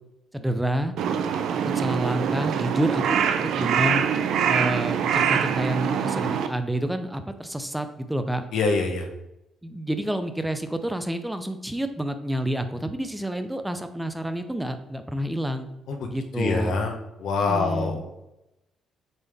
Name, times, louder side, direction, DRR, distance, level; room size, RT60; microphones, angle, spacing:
voice 1, 0.3-0.9 1.6-4.0 4.4-8.4 9.6-15.7 16.1-16.8 17.4-18.1, right 1 dB, 5° right, 8 dB, 0.6 m, -29 dB
Crow, 1.0-6.5, right 7 dB, 80° right, 0.5 m, -24 dB
voice 2, 8.5-9.1 15.9-16.1 16.4-16.9 17.2-18.0, left 4 dB, 75° left, 3 dB, 1.0 m, -25 dB
7.9 x 3.6 x 3.5 m, 0.91 s
cardioid pair, 90°, 0 cm